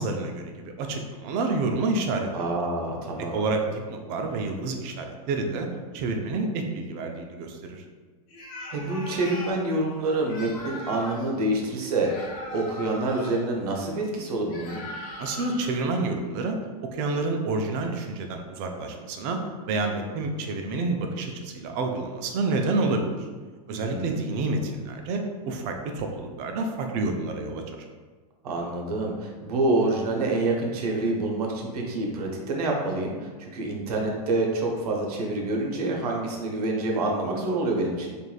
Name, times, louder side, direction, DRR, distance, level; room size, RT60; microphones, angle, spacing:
voice 1, 0.0-2.3 3.3-5.7 5.9-7.8 15.2-16.6 16.9-19.4 19.7-23.3 23.7-25.2 25.5-27.8, right 3 dB, 45° right, 4 dB, 0.4 m, -28 dB
voice 2, 2.3-3.4 8.7-14.8 23.7-24.2 28.4-38.1, right 2 dB, 75° right, 0 dB, 0.7 m, -27 dB
sound 1, 8.3-9.6 10.2-11.3 12.0-13.4 14.5-15.7, left 1 dB, 45° left, 1.0 m, -39 dB
3.1 x 2.5 x 2.2 m, 1.4 s
hypercardioid pair, 120°, 20 cm